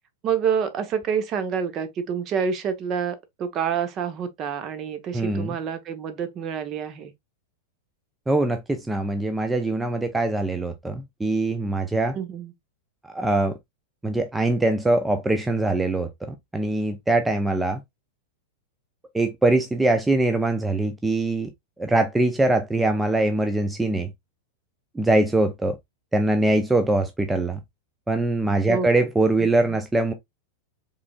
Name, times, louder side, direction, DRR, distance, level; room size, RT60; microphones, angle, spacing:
voice 1, 0.2-7.1 12.1-12.5 28.7-29.1, right 7 dB, 35° right, 0.8 m, -27 dB
voice 2, 5.1-5.5 8.3-12.2 13.1-13.6 14.0-17.8 19.1-21.5 21.8-24.1 24.9-25.8 26.1-27.6 28.1-30.1, right 2 dB, 10° right, 0.5 m, -22 dB
4.9 x 3.3 x 2.3 m
figure-of-eight pair, 95°, 0 cm